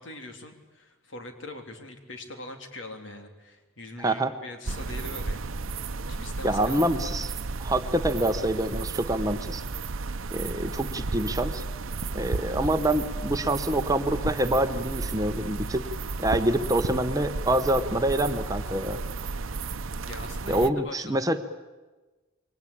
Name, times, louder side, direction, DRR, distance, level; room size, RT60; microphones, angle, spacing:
voice 1, 0.0-7.0 20.1-21.4, left 2 dB, 65° left, 5 dB, 3.4 m, -42 dB
voice 2, 4.0-4.3 6.4-7.3 7.6-9.6 10.3-11.6 12.1-15.8 16.2-19.0 20.5-21.4, right 1 dB, 15° right, 8 dB, 1.0 m, -26 dB
sound 1, 4.7-20.7, right 3 dB, 80° right, 0.8 m, -33 dB
28.0 x 23.0 x 8.7 m, 1.2 s
head